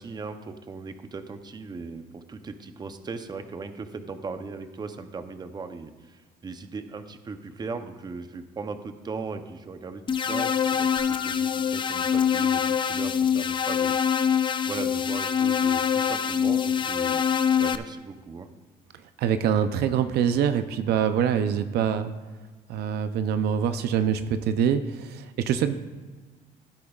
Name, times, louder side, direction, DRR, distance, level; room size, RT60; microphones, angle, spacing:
voice 1, 0.0-18.5, right 4 dB, 25° right, 9 dB, 0.7 m, -38 dB
sound 1, 10.1-17.8, left 7 dB, 30° left, 0.4 m, -24 dB
sound 2, 11.0-13.0, left 9 dB, 60° left, 2.1 m, -42 dB
voice 2, 19.2-22.1 22.7-25.7, right 8 dB, 75° right, 10 dB, 0.6 m, -24 dB
16.0 x 8.3 x 2.4 m, 1.3 s
cardioid pair, 110°, 17 cm